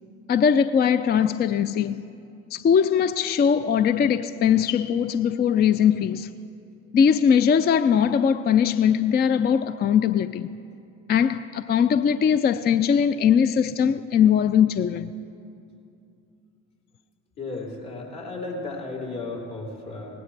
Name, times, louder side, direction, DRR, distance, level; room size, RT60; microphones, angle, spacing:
voice 1, 0.3-2.1 2.5-6.3 6.9-10.5 11.1-15.1, left 7 dB, 30° left, 0.3 m, -20 dB
voice 2, 17.4-20.1, left 3 dB, 65° left, 3.4 m, -34 dB
18.5 x 13.0 x 3.3 m
hypercardioid pair, 55°, 37 cm